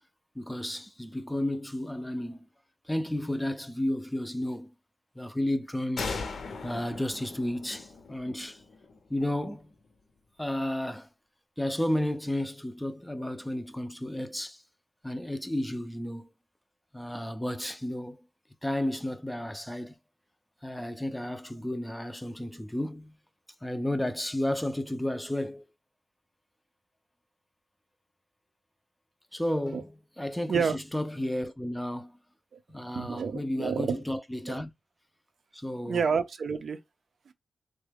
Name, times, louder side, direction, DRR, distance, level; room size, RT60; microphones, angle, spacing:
voice 1, 0.4-2.5 2.9-4.7 5.2-6.2 6.6-8.6 9.1-9.7 10.4-11.1 11.6-14.6 15.0-16.3 16.9-18.2 18.6-19.9 20.6-23.1 23.6-25.6 29.3-32.2 32.7-34.7 35.5-36.0, left 1 dB, 5° left, 0.3 m, -32 dB
sound 1, 6.0-9.5, left 4 dB, 80° left, 0.6 m, -39 dB
voice 2, 32.9-34.0 34.5-34.6 35.9-36.8 37.3-37.4, right 6 dB, 80° right, 0.5 m, -29 dB
3.6 x 2.1 x 3.4 m
wide cardioid pair, 165°, 0 cm